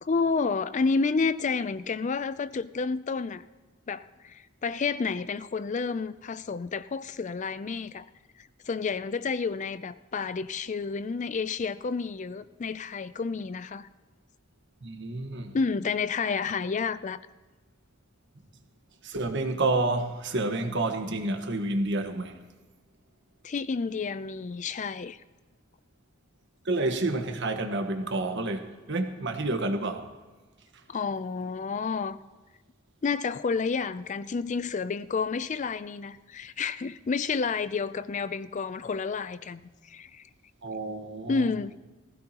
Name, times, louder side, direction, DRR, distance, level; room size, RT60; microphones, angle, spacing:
voice 1, 0.0-3.4 3.9-8.1 8.4-13.9 15.5-17.2 23.4-25.2 30.9-32.2 33.0-40.2 41.3-41.8, left 4 dB, 40° left, 0.4 m, -30 dB
voice 2, 14.8-15.6 19.0-22.4 26.6-30.1 40.6-41.5, right 2 dB, 65° right, 1.4 m, -29 dB
19.0 x 16.0 x 3.0 m
head